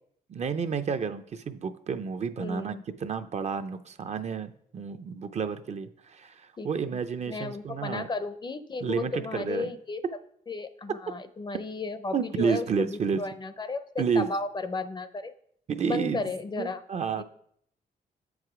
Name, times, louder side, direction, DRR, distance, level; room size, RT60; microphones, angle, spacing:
voice 1, 0.3-2.7 3.0-8.1 8.8-9.7 12.1-13.2 14.0-14.3 15.7-16.2 16.6-17.2, right 6 dB, 45° right, 10 dB, 0.5 m, -30 dB
voice 2, 2.4-2.8 6.6-6.7 7.3-10.0 10.5-15.3 15.8-16.8 17.2-17.3, left 3 dB, 30° left, 11 dB, 0.5 m, -34 dB
7.6 x 4.8 x 4.8 m, 0.67 s
cardioid pair, 105°, 16 cm